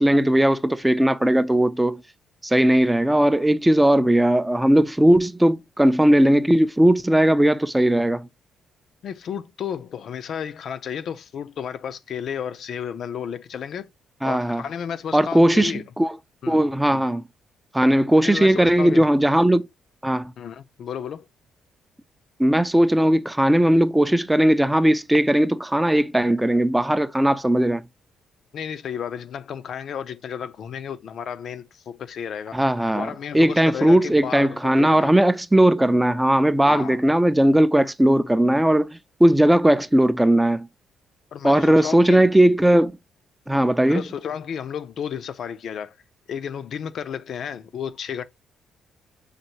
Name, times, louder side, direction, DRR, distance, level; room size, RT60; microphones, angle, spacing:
voice 1, 0.0-2.0 2.4-8.3 14.2-14.6 15.1-16.1 16.5-17.2 17.7-19.6 20.0-20.3 22.4-27.8 32.5-40.7 41.4-42.9 43.5-44.0, right 1 dB, 10° right, 0.4 m, -18 dB
voice 2, 9.0-13.9 14.2-15.8 16.4-16.6 16.9-17.0 18.2-19.0 20.4-21.3 28.5-32.6 32.9-35.1 36.6-37.0 41.3-42.3 43.8-46.0 46.3-48.2, left 8 dB, 65° left, 0.5 m, -32 dB
6.5 x 2.6 x 2.9 m
cardioid pair, 90°, 0 cm